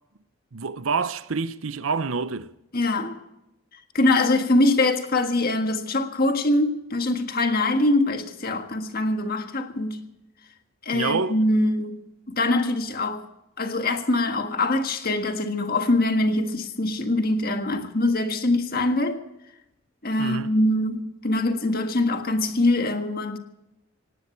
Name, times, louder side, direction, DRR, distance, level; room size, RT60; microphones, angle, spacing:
voice 1, 0.5-2.5 10.9-11.4 20.2-20.5, right 4 dB, 75° right, 0.8 m, -27 dB
voice 2, 2.7-3.2 3.9-10.1 10.8-13.3 13.6-19.2 20.0-23.4, left 2 dB, 45° left, 1.6 m, -23 dB
18.5 x 17.0 x 4.5 m
head